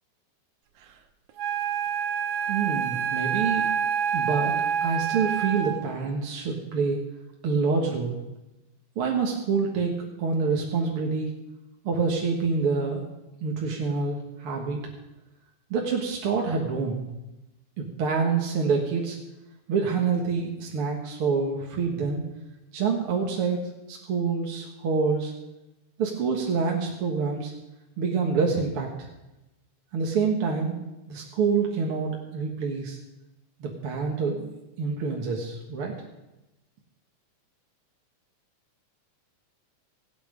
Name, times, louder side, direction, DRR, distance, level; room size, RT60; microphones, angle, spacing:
Wind instrument woodwind instrument, 1.4-6.0, right 7 dB, 80° right, 2.6 m, -27 dB
voice 1, 2.5-3.7 4.1-4.5 4.8-7.0 7.4-8.2 9.0-11.3 11.8-13.1 13.4-14.8 15.7-17.0 17.8-19.2 19.7-22.2 22.7-23.6 23.9-25.3 26.0-27.5 28.0-29.1 29.9-30.8 31.1-33.0 33.6-34.5 34.8-35.9, right 5 dB, 55° right, 0 dB, 2.2 m, -26 dB
25.0 x 8.8 x 5.1 m, 0.98 s
omnidirectional pair, 3.4 m